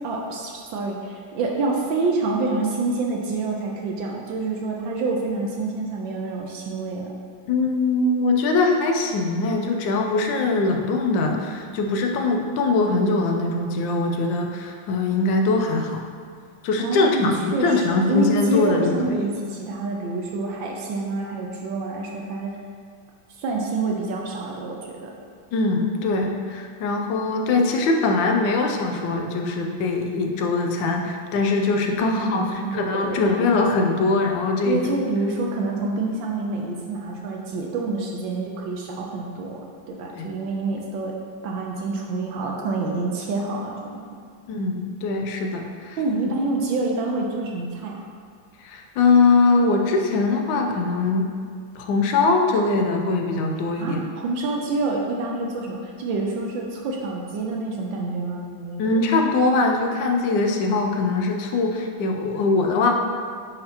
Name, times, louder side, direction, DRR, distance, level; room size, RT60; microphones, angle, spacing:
voice 1, 0.0-7.1 16.8-22.5 23.4-25.1 32.0-33.4 34.6-41.1 41.4-44.2 46.0-48.0 53.8-59.0, right 3 dB, 80° right, -1 dB, 1.3 m, -27 dB
voice 2, 7.5-16.1 16.6-19.3 25.5-32.4 32.7-35.0 40.1-40.3 44.5-46.0 48.6-51.3 51.7-54.1 58.8-62.9, left 3 dB, 75° left, 3 dB, 1.3 m, -22 dB
9.5 x 4.1 x 2.9 m, 2.1 s
omnidirectional pair, 2.1 m